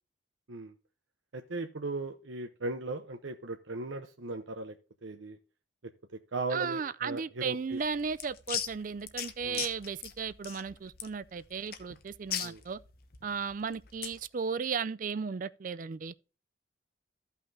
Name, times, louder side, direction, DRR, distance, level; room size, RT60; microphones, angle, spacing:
voice 1, 1.3-4.7 5.0-5.4 5.8-7.8 9.4-9.6 12.4-12.6, right 2 dB, 85° right, 0.8 m, -38 dB
voice 2, 6.5-12.8 13.2-16.1, right 5 dB, 45° right, 0.4 m, -35 dB
sound 1, 7.7-14.2, left 8 dB, 50° left, 0.9 m, -39 dB
14.5 x 5.7 x 2.7 m
head